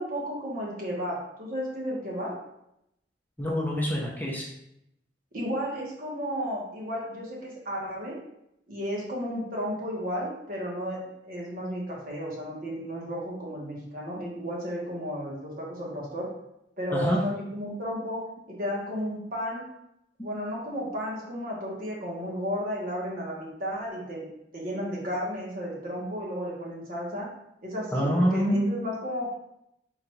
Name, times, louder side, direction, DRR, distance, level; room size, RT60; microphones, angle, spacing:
voice 1, 0.0-2.3 5.3-8.1 8.7-11.0 11.2-16.3 16.8-18.2 18.5-19.6 20.2-24.3 24.5-27.3 27.6-29.3, equal, 55° right, -4 dB, 1.2 m, -33 dB
voice 2, 3.4-4.4 16.9-17.2 27.9-28.7, equal, 10° left, -3 dB, 0.6 m, -25 dB
3.9 x 2.5 x 4.4 m, 0.81 s
head